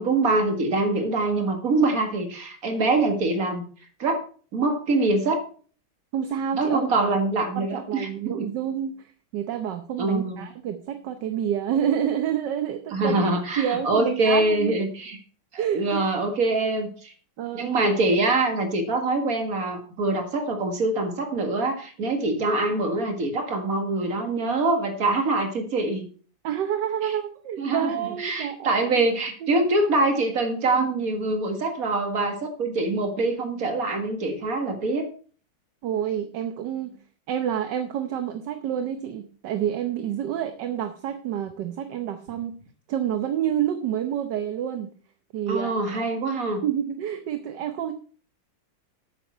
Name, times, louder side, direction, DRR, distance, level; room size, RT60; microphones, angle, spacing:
voice 1, 0.0-3.6 4.0-4.2 4.5-5.4 6.5-8.5 10.0-10.4 12.9-15.2 15.5-17.1 17.5-26.1 27.6-27.9 28.2-35.1 45.5-46.6, right 2 dB, 50° right, 5 dB, 2.2 m, -24 dB
voice 2, 6.1-6.8 7.5-13.2 13.6-14.7 15.6-16.0 17.4-17.7 26.4-29.0 29.4-29.5 30.8-30.9 35.8-37.0 37.3-42.5 42.9-44.9 45.3-45.8 46.6-47.9, right 9 dB, 70° right, 8 dB, 1.4 m, -28 dB
11.5 x 8.7 x 4.5 m, 0.43 s
omnidirectional pair, 2.0 m